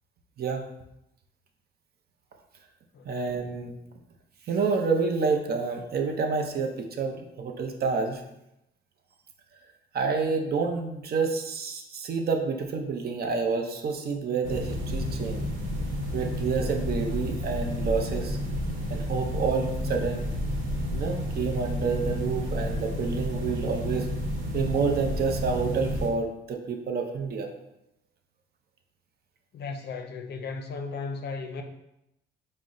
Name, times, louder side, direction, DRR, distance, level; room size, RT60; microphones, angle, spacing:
voice 1, 0.4-0.7 3.1-3.8 4.5-8.2 9.9-15.5 16.1-18.4 18.9-20.3 20.9-24.1 24.5-27.5, right 5 dB, 50° right, 4 dB, 0.6 m, -28 dB
sound 1, 14.4-26.1, equal, 80° right, 1.0 m, -31 dB
voice 2, 29.5-31.6, left 4 dB, 55° left, 5 dB, 0.5 m, -35 dB
4.0 x 2.1 x 3.7 m, 0.87 s
cardioid pair, 90°, 20 cm